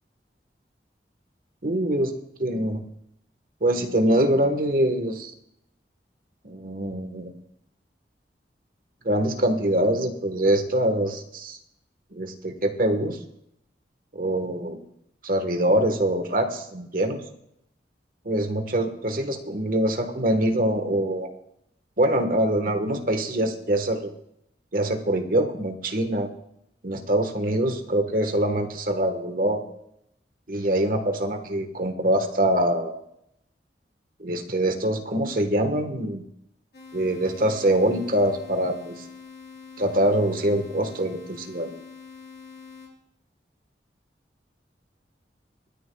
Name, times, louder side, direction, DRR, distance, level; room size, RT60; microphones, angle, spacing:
voice 1, 1.6-2.1 2.4-2.8 3.6-5.3 6.4-7.3 9.0-11.6 12.1-13.2 14.1-14.8 15.2-17.2 18.2-21.3 22.0-24.1 24.7-26.3 26.8-29.6 30.5-33.0 34.2-36.2 36.9-39.0 39.8-41.7, right 1 dB, 50° right, 6 dB, 1.4 m, -24 dB
sound 1, 36.7-42.9, left 5 dB, 70° left, 3.5 m, -45 dB
23.5 x 10.0 x 2.3 m, 0.76 s
head